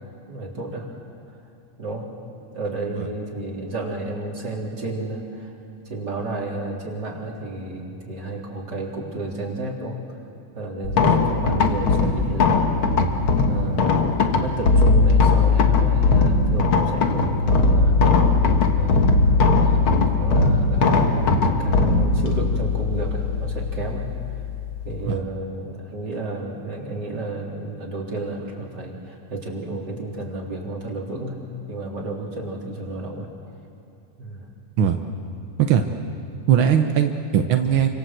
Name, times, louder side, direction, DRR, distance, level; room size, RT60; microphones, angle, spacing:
voice 1, 0.3-0.9 1.8-2.1 2.5-5.5 5.9-10.0 10.5-13.1 13.4-18.4 18.8-24.1 24.8-31.4 31.7-33.3 34.2-34.5, right 2 dB, 30° right, -2 dB, 4.2 m, -32 dB
sound 1, 10.8-25.1, left 3 dB, 50° left, 2.0 m, -19 dB
voice 2, 36.5-37.9, right 9 dB, 65° right, 5 dB, 1.3 m, -19 dB
29.5 x 26.0 x 7.8 m, 2.6 s
omnidirectional pair, 3.6 m